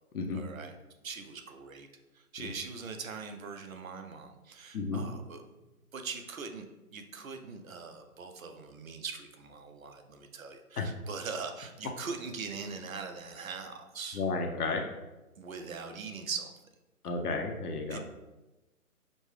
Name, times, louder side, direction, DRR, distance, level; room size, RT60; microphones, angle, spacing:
voice 1, 0.3-0.8 1.0-1.9 2.1-5.6 5.9-14.2 15.4-16.5 17.9-18.1, right 5 dB, 65° right, 5 dB, 0.7 m, -41 dB
voice 2, 14.1-14.9 17.0-18.0, left 3 dB, 80° left, 2 dB, 0.8 m, -32 dB
5.2 x 2.2 x 3.2 m, 1.0 s
hypercardioid pair, 165°, 45 cm